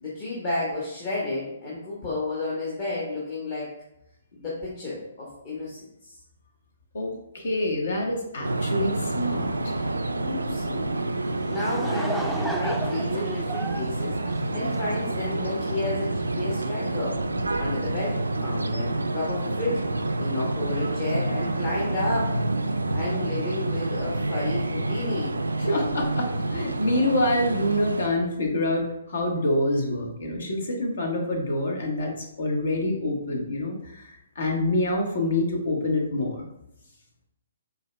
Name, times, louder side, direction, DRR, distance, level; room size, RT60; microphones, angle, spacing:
voice 1, 0.0-3.7 4.3-6.1 10.2-10.8 11.5-14.2 14.5-17.2 17.6-19.8 20.2-22.4 22.9-25.4, left 2 dB, 40° left, -7 dB, 1.2 m, -32 dB
voice 2, 6.9-9.7 25.6-36.5, left 1 dB, 65° left, 0 dB, 1.2 m, -26 dB
sound 1, 8.4-28.1, right 2 dB, 85° right, 0.3 m, -28 dB
Laughter / Crowd, 11.3-15.1, right 1 dB, ahead, 0.4 m, -33 dB
5.3 x 3.8 x 2.2 m, 0.81 s
figure-of-eight pair, 130°, 0 cm